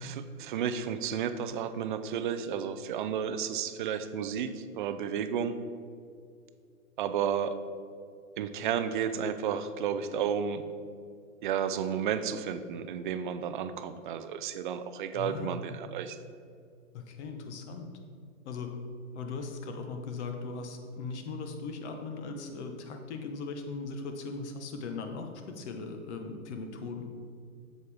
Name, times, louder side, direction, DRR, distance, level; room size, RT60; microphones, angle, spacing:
voice 1, 0.0-5.5 7.0-7.6 8.4-10.6 11.4-16.2, right 8 dB, 35° right, 10 dB, 0.4 m, -32 dB
voice 2, 15.1-15.6 16.9-18.0 18.4-18.7 19.1-27.1, left 4 dB, 50° left, 5 dB, 1.2 m, -39 dB
8.0 x 7.5 x 3.5 m, 2.3 s
hypercardioid pair, 120°, 44 cm